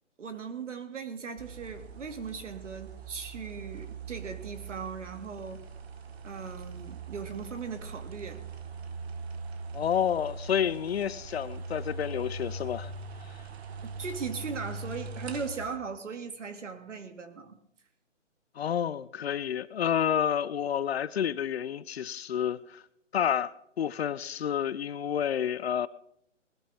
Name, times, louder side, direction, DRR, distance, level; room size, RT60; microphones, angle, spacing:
voice 1, 0.2-5.6 6.2-8.4 13.8-17.6, right 5 dB, 75° right, 2.5 m, -38 dB
sound 1, 1.4-15.8, right 3 dB, 55° right, 1.5 m, -41 dB
voice 2, 9.7-12.9 18.6-22.8 23.1-23.5 23.8-25.9, left 9 dB, 55° left, 0.7 m, -29 dB
20.5 x 12.5 x 3.6 m
hypercardioid pair, 150°, 37 cm